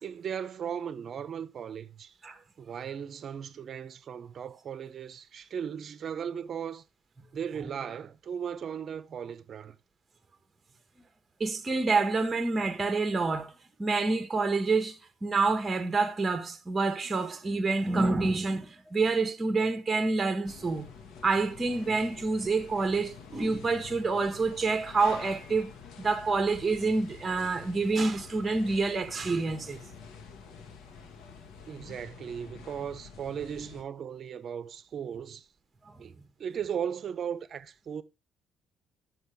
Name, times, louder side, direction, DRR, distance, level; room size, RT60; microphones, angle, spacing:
voice 1, 0.0-2.2 2.6-6.8 7.3-9.8 31.7-35.5 36.0-38.0, right 8 dB, 45° right, 0.8 m, -37 dB
voice 2, 11.4-13.5 13.8-20.9 21.2-25.7 26.0-29.8 35.9-36.0, right 3 dB, 20° right, 1.4 m, -27 dB
sound 1, 20.4-33.8, left 5 dB, 70° left, 1.9 m, -48 dB
10.0 x 7.8 x 3.7 m
cardioid pair, 110°, 0 cm